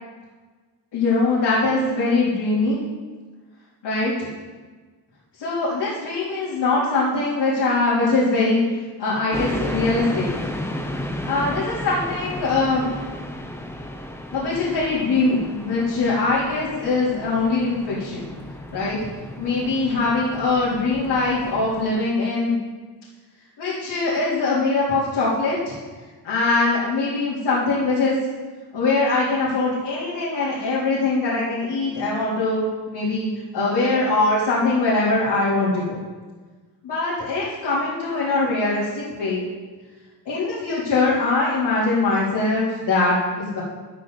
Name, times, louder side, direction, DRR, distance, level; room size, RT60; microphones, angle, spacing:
voice 1, 0.9-2.8 3.8-4.3 5.4-8.6 9.0-10.4 11.3-12.9 14.3-18.3 18.7-19.0 19.4-22.5 23.6-25.8 26.2-28.1 28.7-33.3 33.5-36.0 36.8-39.4 40.3-43.6, left 3 dB, 85° left, -9 dB, 3.8 m, -22 dB
sound 1, 9.3-21.9, left 1 dB, 5° left, 0.8 m, -33 dB
13.0 x 12.0 x 4.1 m, 1.4 s
wide cardioid pair, 155°, 41 cm